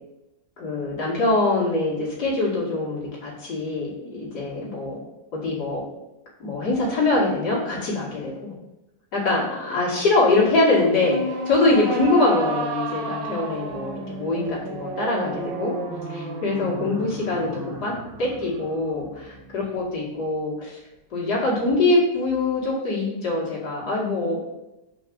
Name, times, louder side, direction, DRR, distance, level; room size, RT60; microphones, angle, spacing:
voice 1, 0.6-5.0 5.3-5.8 6.4-8.5 9.1-15.7 16.1-17.9 18.2-20.8 21.1-24.4, left 2 dB, 55° left, -6 dB, 2.9 m, -23 dB
sound 1, 10.5-19.9, right 3 dB, 70° right, 1.7 m, -32 dB
5.2 x 5.1 x 6.1 m, 0.95 s
omnidirectional pair, 2.0 m